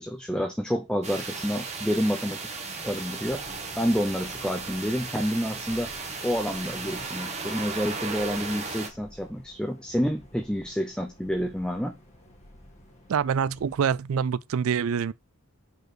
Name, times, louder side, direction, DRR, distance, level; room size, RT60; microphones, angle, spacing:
voice 1, 0.0-2.5 2.8-3.5 3.8-5.9 6.2-12.0, equal, 5° left, 0.7 m, -29 dB
sound 1, 1.0-8.9, right 4 dB, 30° right, 1.4 m, -35 dB
sound 2, 3.2-13.8, left 1 dB, 30° left, 1.8 m, -53 dB
voice 2, 13.1-15.1, right 7 dB, 65° right, 0.3 m, -25 dB
5.3 x 4.5 x 6.0 m
head